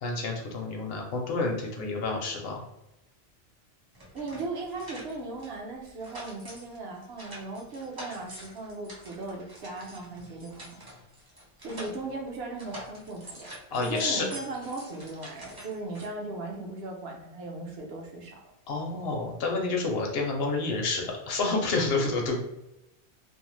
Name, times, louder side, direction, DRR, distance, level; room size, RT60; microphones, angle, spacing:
voice 1, 0.0-2.6 13.7-14.3 18.7-22.4, left 3 dB, 65° left, 1 dB, 0.8 m, -29 dB
sound 1, 3.9-5.5 5.9-12.3 12.5-16.1, right 1 dB, 25° right, 0.6 m, -46 dB
voice 2, 4.1-10.8 11.6-13.5 13.8-18.5, right 2 dB, 65° right, 0 dB, 0.9 m, -37 dB
2.6 x 2.0 x 3.0 m, 0.89 s
omnidirectional pair, 1.2 m